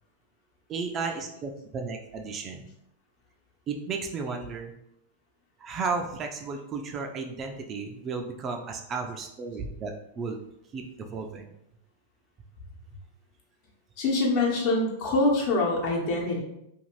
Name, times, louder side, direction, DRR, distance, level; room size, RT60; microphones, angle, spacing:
voice 1, 0.7-2.7 3.7-4.7 5.6-10.4 10.7-11.5, right 4 dB, 30° right, 3 dB, 0.4 m, -34 dB
voice 2, 14.0-16.4, left 2 dB, 50° left, -2 dB, 1.0 m, -25 dB
2.6 x 2.4 x 3.1 m, 0.80 s
hypercardioid pair, 130°, 0 cm